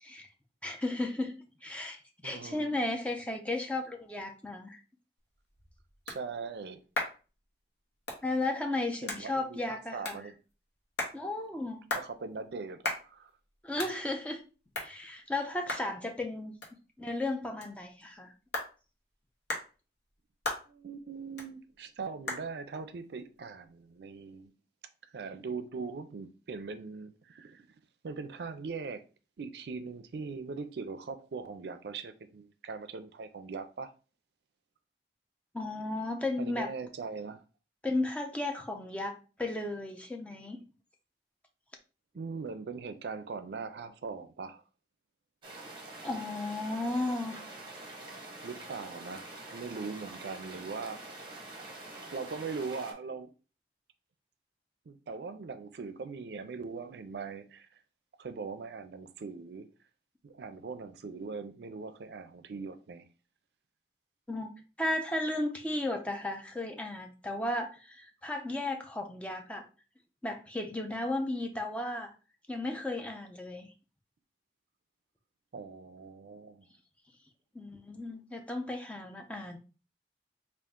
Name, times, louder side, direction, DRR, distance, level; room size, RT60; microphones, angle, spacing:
voice 1, 0.6-1.3 1.6-4.8 8.2-10.2 11.1-11.8 13.6-14.4 14.8-16.6 17.0-18.3 35.5-36.7 37.8-40.6 46.0-47.4 64.3-64.5 64.8-69.6 70.2-72.1 72.5-73.7 77.5-79.6, left 2 dB, 5° left, 0.4 m, -34 dB
voice 2, 2.2-2.7 6.1-6.8 9.0-10.3 11.9-12.8 13.1-13.3 20.7-24.5 25.1-27.7 28.0-29.0 29.4-33.9 36.4-37.4 42.1-44.6 48.4-51.3 52.1-53.3 54.9-57.7 58.2-59.7 60.2-63.1 75.5-76.7, right 4 dB, 70° right, 0.4 m, -41 dB
sound 1, 5.2-24.5, left 2 dB, 80° left, 1.0 m, -42 dB
sound 2, 45.4-52.9, right 2 dB, 30° right, 0.8 m, -46 dB
3.6 x 2.4 x 3.6 m
head